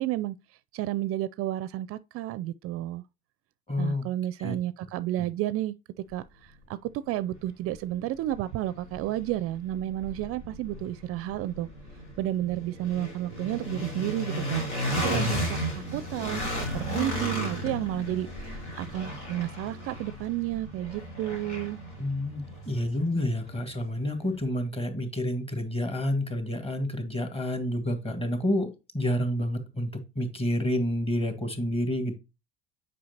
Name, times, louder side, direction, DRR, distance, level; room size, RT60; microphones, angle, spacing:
voice 1, 0.0-3.0 3.8-5.7 6.1-11.7 12.2-14.7 14.9-21.8, right 14 dB, 45° right, 0.4 m, -32 dB
voice 2, 3.7-4.1 4.4-4.6 15.1-15.4 22.0-32.2, left 1 dB, 15° left, 1.9 m, -29 dB
sound 1, 7.3-7.4 7.9-23.9, equal, 85° left, 3.7 m, -35 dB
8.4 x 5.2 x 2.8 m
figure-of-eight pair, 70°, 34 cm